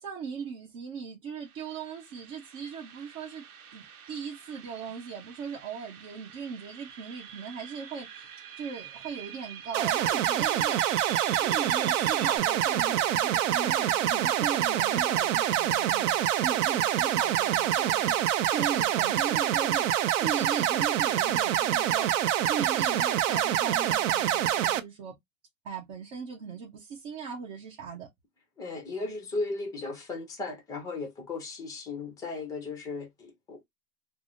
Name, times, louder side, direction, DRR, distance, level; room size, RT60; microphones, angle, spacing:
voice 1, 0.0-3.4 3.7-8.3 8.6-10.8 11.3-16.2 16.4-18.2 18.5-19.8 20.2-22.1 22.5-25.2 25.6-28.1, right 6 dB, 35° right, 0.8 m, -38 dB
sound 1, 1.4-12.4, right 9 dB, 90° right, 0.9 m, -45 dB
sound 2, 9.7-24.8, right 11 dB, 60° right, 0.5 m, -26 dB
voice 2, 28.6-33.6, left 3 dB, 10° left, 0.6 m, -36 dB
3.3 x 2.0 x 2.6 m
supercardioid pair, 145°, 43 cm